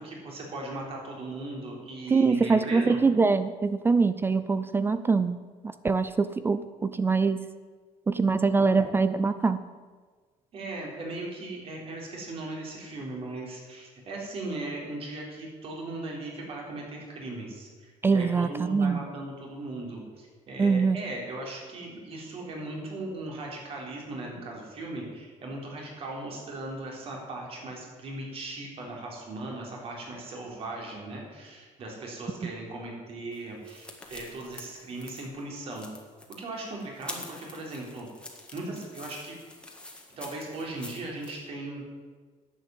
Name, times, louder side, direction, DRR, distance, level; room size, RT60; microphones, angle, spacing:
voice 1, 0.0-3.0 10.5-35.9 36.4-38.1 38.5-39.4 40.2-41.8, right 2 dB, 45° right, -1 dB, 3.7 m, -38 dB
voice 2, 2.1-5.4 5.6-7.4 8.1-9.6 18.0-19.0 20.6-21.0 32.4-32.5, right 4 dB, 15° right, 13 dB, 0.4 m, -24 dB
sound 1, 33.3-41.4, left 2 dB, 5° left, 1.7 m, -46 dB
11.0 x 8.1 x 7.8 m, 1.5 s
cardioid pair, 145°, 14 cm